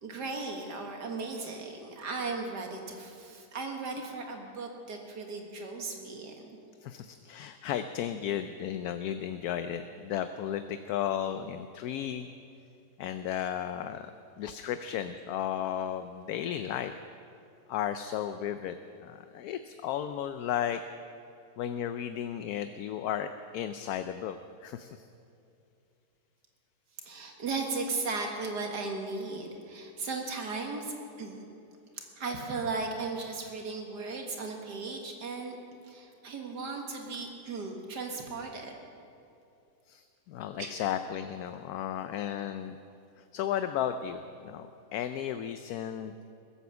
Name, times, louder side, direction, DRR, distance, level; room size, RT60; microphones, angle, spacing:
voice 1, 0.0-6.5 27.0-31.4 31.9-35.5 35.8-38.7 40.6-40.7, right 3 dB, 75° right, 2 dB, 2.2 m, -36 dB
voice 2, 6.8-12.3 13.0-14.1 14.4-16.9 17.7-20.8 21.6-23.3 23.5-25.1 39.9-42.8 43.2-46.1, left 10 dB, 70° left, 10 dB, 1.0 m, -34 dB
20.0 x 8.7 x 7.0 m, 2.6 s
omnidirectional pair, 1.8 m